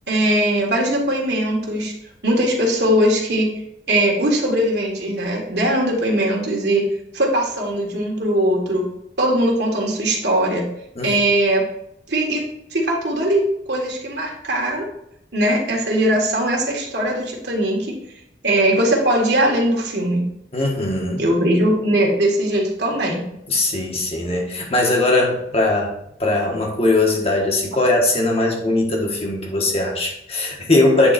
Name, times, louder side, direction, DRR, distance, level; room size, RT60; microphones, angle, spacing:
voice 1, 0.1-1.9 2.2-3.5 3.9-6.9 7.1-8.8 9.2-10.7 11.0-11.6 12.1-12.4 12.7-13.4 13.7-14.8 15.3-17.9 18.4-20.3 21.2-23.3, right 1 dB, 65° right, -1 dB, 1.8 m, -20 dB
voice 2, 20.5-21.2 23.5-25.9 26.2-31.1, left 2 dB, 35° left, 0 dB, 1.5 m, -20 dB
8.8 x 4.0 x 4.1 m, 0.77 s
head